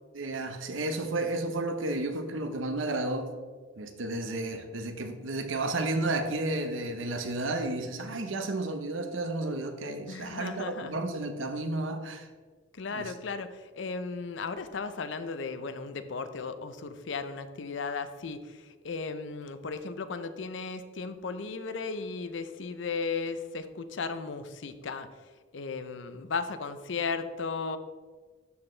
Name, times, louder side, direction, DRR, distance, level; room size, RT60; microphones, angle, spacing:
voice 1, 0.1-3.3 3.8-12.3 12.9-13.1, right 2 dB, 80° right, 7 dB, 0.8 m, -32 dB
voice 2, 10.1-11.0 12.7-25.1 25.5-27.8, left 4 dB, 65° left, 11 dB, 0.5 m, -35 dB
12.5 x 4.4 x 3.2 m, 1.4 s
head